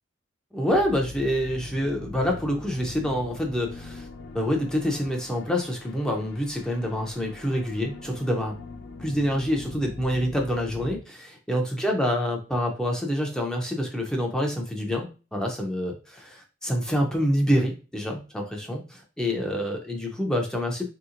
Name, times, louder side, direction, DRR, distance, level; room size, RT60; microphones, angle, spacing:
voice 1, 0.5-4.1 4.3-8.6 9.0-20.9, equal, 5° left, 1 dB, 0.4 m, -27 dB
sound 1, 0.7-11.0, left 3 dB, 65° left, 0.4 m, -42 dB
3.4 x 2.8 x 2.4 m, 0.34 s
head